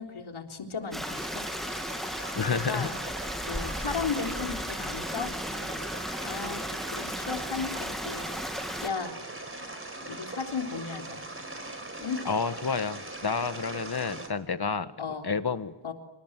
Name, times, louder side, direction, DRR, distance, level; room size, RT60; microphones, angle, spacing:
voice 1, 0.0-1.4 2.5-3.0 3.5-5.8 6.2-6.6 6.9-9.2 10.1-11.2 12.0-12.2 15.0-15.3 15.8-15.9, left 5 dB, 80° left, 2 dB, 3.8 m, -35 dB
Stream, 0.9-8.9, equal, ahead, 1.3 m, -35 dB
sound 1, 1.0-14.3, right 2 dB, 25° right, 4.5 m, -40 dB
voice 2, 2.3-2.9 12.2-15.7, left 5 dB, 50° left, 11 dB, 1.5 m, -30 dB
28.5 x 26.0 x 7.5 m, 1.0 s
wide cardioid pair, 120°, 48 cm